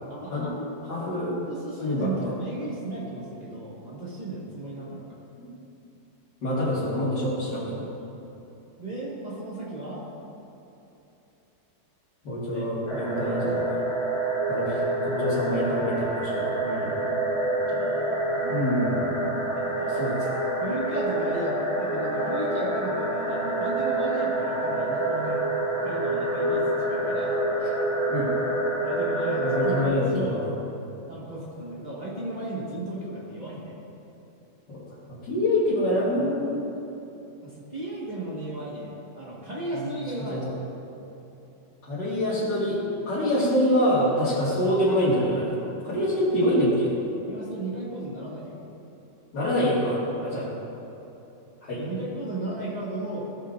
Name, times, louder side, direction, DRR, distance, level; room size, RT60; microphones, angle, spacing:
voice 1, 0.1-0.8 1.5-5.1 8.8-10.0 12.5-12.7 13.3-13.6 14.7-14.9 15.4-15.6 17.4-19.1 19.5-20.1 20.6-25.4 25.8-27.4 28.8-30.4 31.1-33.8 37.4-40.4 47.3-48.6 50.1-50.5 51.7-53.3, right 2 dB, 25° right, -6 dB, 1.2 m, -35 dB
voice 2, 0.9-1.4 1.8-2.3 5.4-5.5 6.4-7.8 12.2-13.8 14.5-17.1 18.5-19.5 19.9-20.5 27.6-27.7 28.1-28.3 29.4-30.5 34.7-34.8 35.2-36.6 39.8-39.9 40.3-40.5 41.8-42.8 43.1-45.5 45.8-47.0 49.3-50.4 51.6-51.8, equal, 80° left, -11 dB, 2.3 m, -26 dB
sound 1, 12.9-29.9, right 1 dB, 20° left, 1.0 m, -27 dB
15.0 x 5.5 x 2.5 m, 2.9 s
omnidirectional pair, 1.9 m